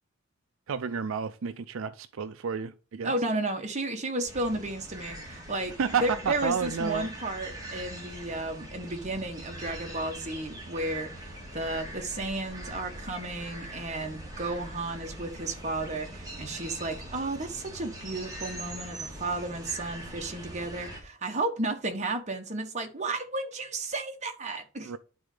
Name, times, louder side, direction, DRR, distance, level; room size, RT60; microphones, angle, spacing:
voice 1, 0.7-3.1 5.8-7.1 24.8-25.0, right 6 dB, 75° right, 0.4 m, -31 dB
voice 2, 3.0-11.2 11.5-24.9, right 2 dB, 35° right, 1.2 m, -33 dB
sound 1, 4.3-21.0, right 1 dB, 20° right, 2.1 m, -42 dB
9.8 x 3.8 x 5.0 m
head